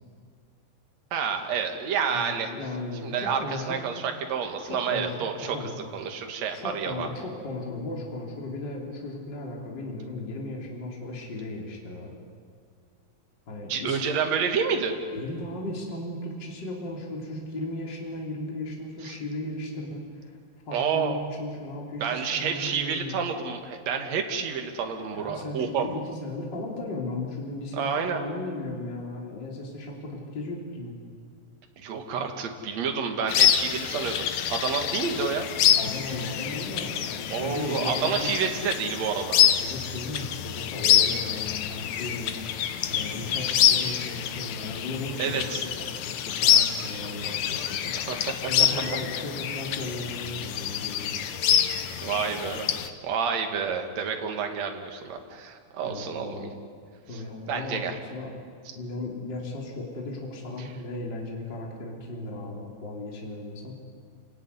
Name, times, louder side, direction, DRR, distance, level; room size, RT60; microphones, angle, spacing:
voice 1, 1.1-2.5 3.0-5.6 5.9-7.1 13.7-14.9 19.0-19.2 20.7-21.2 22.0-25.8 27.7-28.2 31.8-35.5 37.3-39.4 45.2-45.6 48.0-48.5 52.0-52.7 53.0-56.5 57.1-57.2 57.5-57.9 60.6-60.7, right 6 dB, 50° right, 4 dB, 2.8 m, -29 dB
voice 2, 2.1-3.8 4.7-5.7 6.5-12.1 13.5-14.0 15.1-20.4 20.7-23.2 25.1-31.0 35.8-38.4 39.6-47.9 48.5-51.2 55.8-56.5 57.1-58.3 58.7-63.8, left 2 dB, 25° left, -1 dB, 3.8 m, -36 dB
sound 1, 33.3-52.9, left 10 dB, 80° left, 1.6 m, -26 dB
29.5 x 17.5 x 9.8 m, 2.1 s
omnidirectional pair, 4.8 m